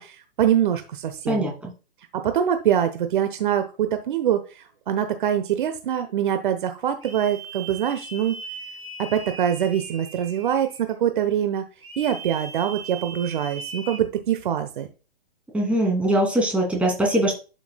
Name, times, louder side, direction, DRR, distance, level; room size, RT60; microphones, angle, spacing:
voice 1, 0.0-1.5 2.1-8.4 9.0-11.6 12.0-14.9, right 9 dB, 55° right, 8 dB, 1.0 m, -24 dB
voice 2, 1.3-1.7 15.5-17.4, right 1 dB, 5° right, -2 dB, 2.7 m, -22 dB
sound 1, 7.0-10.9 11.8-14.0, right 3 dB, 90° right, 4.1 m, -39 dB
11.5 x 5.8 x 2.3 m, 0.32 s
hypercardioid pair, 130°, 30 cm